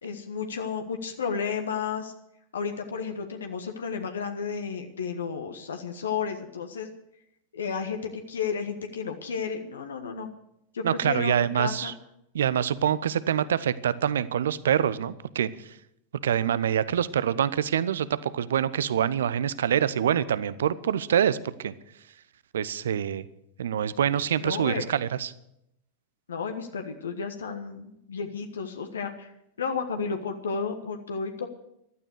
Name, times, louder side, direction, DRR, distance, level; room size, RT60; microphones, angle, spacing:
voice 1, 0.0-2.1 2.5-6.9 7.5-10.3 10.7-12.0 24.4-24.8 26.3-29.3 29.6-31.5, left 6 dB, 70° left, 6 dB, 1.3 m, -32 dB
voice 2, 10.8-11.9 12.3-15.5 16.2-21.7 22.5-23.3 23.6-25.3, right 9 dB, 65° right, 17 dB, 0.7 m, -25 dB
15.0 x 12.5 x 6.5 m, 0.79 s
figure-of-eight pair, 90°, 0 cm